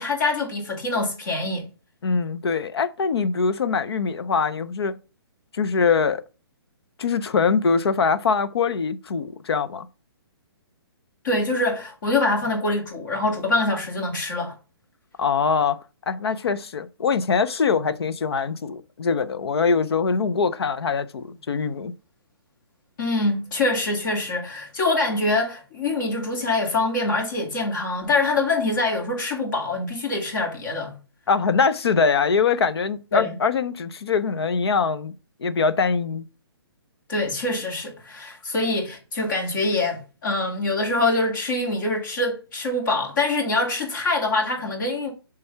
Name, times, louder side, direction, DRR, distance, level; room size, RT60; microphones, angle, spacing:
voice 1, 0.0-1.7 11.2-14.5 23.0-31.0 33.1-33.3 37.1-45.1, left 2 dB, 50° left, 2.8 m, -24 dB
voice 2, 2.0-4.9 5.5-6.2 7.0-9.9 15.2-15.8 16.1-21.9 31.3-35.1 35.4-36.2, left 5 dB, 75° left, 0.7 m, -23 dB
6.8 x 3.4 x 5.6 m
hypercardioid pair, 155°, 13 cm